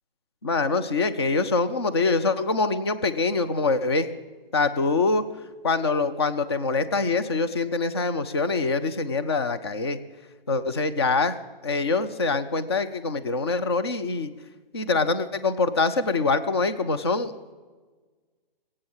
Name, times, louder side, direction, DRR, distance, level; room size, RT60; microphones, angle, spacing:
voice 1, 0.4-4.1 4.5-5.2 5.6-10.0 10.5-11.3 11.6-14.3 14.7-17.5, left 3 dB, 25° left, 10 dB, 0.5 m, -24 dB
22.0 x 8.7 x 7.2 m, 1.4 s
hypercardioid pair, 165°, 30 cm